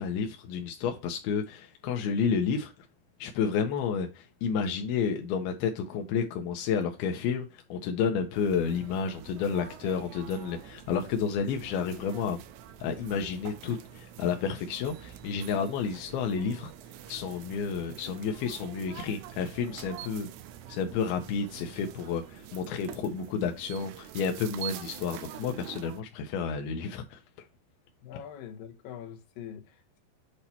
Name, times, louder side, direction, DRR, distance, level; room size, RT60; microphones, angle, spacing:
voice 1, 0.0-2.7 3.2-12.4 12.8-16.7 17.1-20.3 20.7-27.2, left 6 dB, 85° left, 2.2 m, -31 dB
sound 1, 8.3-26.0, right 11 dB, 80° right, 2.8 m, -46 dB
voice 2, 28.0-30.0, left 9 dB, 65° left, 2.3 m, -44 dB
8.2 x 2.9 x 4.2 m
omnidirectional pair, 5.3 m